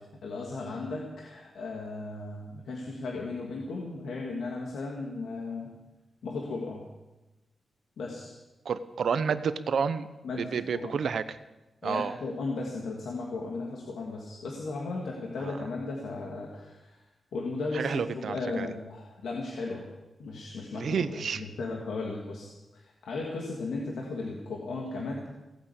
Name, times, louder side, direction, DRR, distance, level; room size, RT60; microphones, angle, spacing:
voice 1, 0.2-5.7 6.2-6.9 8.0-8.3 10.2-11.0 11.8-16.9 17.3-19.8 20.2-25.3, left 3 dB, 85° left, -1 dB, 2.4 m, -36 dB
voice 2, 8.6-10.1 10.4-11.4 11.8-12.2 15.4-15.6 17.7-18.7 20.7-21.4, right 6 dB, 60° right, 12 dB, 0.8 m, -30 dB
17.0 x 9.2 x 8.3 m, 1.1 s
wide cardioid pair, 175°, 0 cm